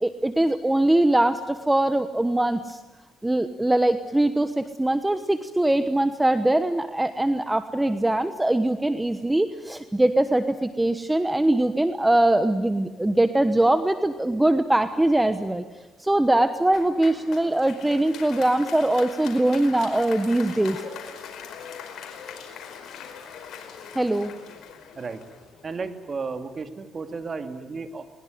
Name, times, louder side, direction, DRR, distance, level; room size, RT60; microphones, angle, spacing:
voice 1, 0.0-2.8 3.2-15.6 16.0-20.8 23.9-24.3, right 1 dB, 10° right, 10 dB, 1.1 m, -22 dB
Applause, 16.7-26.1, left 7 dB, 75° left, 4.9 m, -41 dB
voice 2, 25.6-28.1, right 4 dB, 40° right, 7 dB, 2.5 m, -33 dB
21.5 x 21.0 x 9.4 m, 1.3 s
cardioid pair, 90°, 0 cm